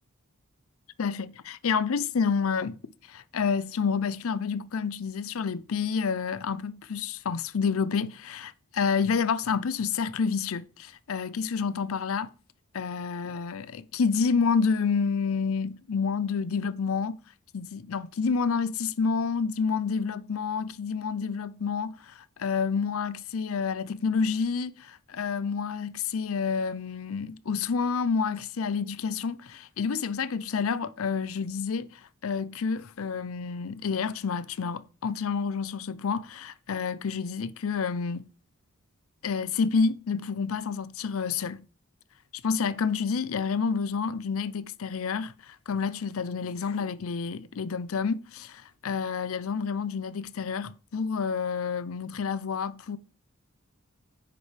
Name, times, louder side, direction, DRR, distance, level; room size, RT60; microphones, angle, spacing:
voice 1, 1.0-2.8 3.1-12.3 12.7-17.2 17.5-38.3 39.2-41.7 42.4-53.0, left 5 dB, 70° left, 0.5 m, -29 dB
9.7 x 7.8 x 3.3 m
head